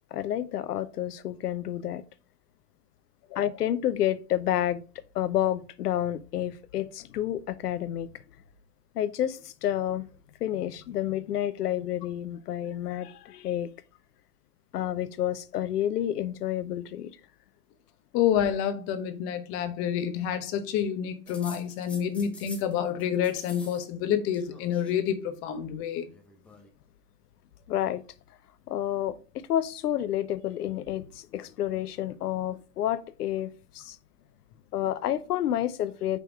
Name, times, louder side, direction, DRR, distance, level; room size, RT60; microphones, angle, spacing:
voice 1, 0.1-2.0 3.4-4.8 5.1-8.1 8.9-10.0 10.4-13.7 14.7-17.1 27.7-28.0 28.7-34.0 34.7-36.2, left 11 dB, 70° left, 0.8 m, -29 dB
voice 2, 18.1-26.1, left 9 dB, 25° left, 0.9 m, -28 dB
sound 1, 21.3-22.7 23.0-23.9 24.1-25.0 26.0-26.7, left 2 dB, 5° left, 0.6 m, -47 dB
5.4 x 4.6 x 4.5 m
hypercardioid pair, 130°, 48 cm